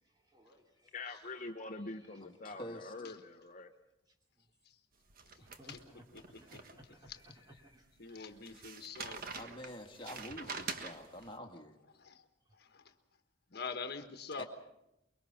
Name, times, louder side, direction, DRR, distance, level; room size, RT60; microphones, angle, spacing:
voice 1, 0.3-0.9 5.4-6.0 6.4-8.3, equal, 20° right, 2 dB, 3.1 m, -59 dB
voice 2, 0.9-3.7, left 3 dB, 40° left, 6 dB, 0.9 m, -45 dB
voice 3, 2.2-2.9 9.3-11.8 14.4-14.5, left 1 dB, 25° left, 3 dB, 2.0 m, -47 dB
sound 1, 5.1-7.1 7.6-7.7 8.5-11.3, right 4 dB, 50° right, 1.6 m, -45 dB
voice 4, 8.0-9.2 11.9-12.2 12.6-12.9 13.5-14.5, left 4 dB, 60° left, 8 dB, 1.4 m, -44 dB
24.0 x 23.0 x 5.9 m, 0.85 s
head